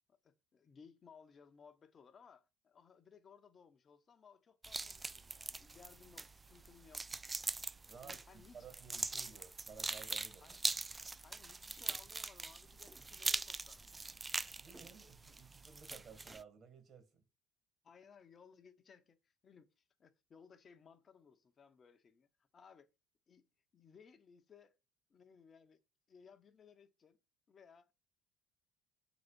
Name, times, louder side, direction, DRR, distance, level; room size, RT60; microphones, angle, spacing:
voice 1, 0.1-7.0 8.0-8.6 9.3-9.4 10.4-10.6 11.2-14.2 17.8-22.9 23.3-23.5 23.7-24.8 25.1-25.8 26.1-27.2 27.5-27.9, left 6 dB, 35° left, 1.1 m, -62 dB
sound 1, 4.6-16.4, right 3 dB, 20° right, 0.3 m, -42 dB
voice 2, 7.9-10.6 14.6-17.2, right 6 dB, 45° right, 2.6 m, -56 dB
6.8 x 4.1 x 5.3 m
supercardioid pair, 85°, 0 cm